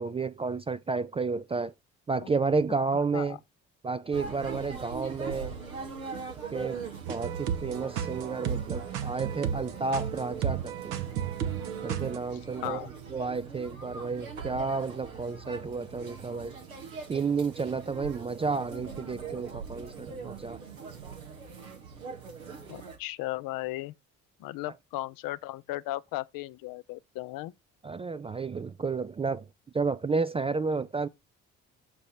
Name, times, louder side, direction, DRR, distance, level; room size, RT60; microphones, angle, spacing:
voice 1, 0.0-1.7 2.1-3.4 3.8-5.6 6.5-11.0 11.8-16.6 17.1-20.6 27.8-29.5 29.7-31.1, right 4 dB, 15° right, 0.3 m, -31 dB
sound 1, 4.1-23.0, right 5 dB, 85° right, 1.3 m, -42 dB
sound 2, 7.0-12.2, right 8 dB, 65° right, 1.0 m, -33 dB
voice 2, 22.7-23.9 24.4-27.5, left 18 dB, 55° left, 0.6 m, -36 dB
6.8 x 3.0 x 5.7 m
figure-of-eight pair, 45°, 40 cm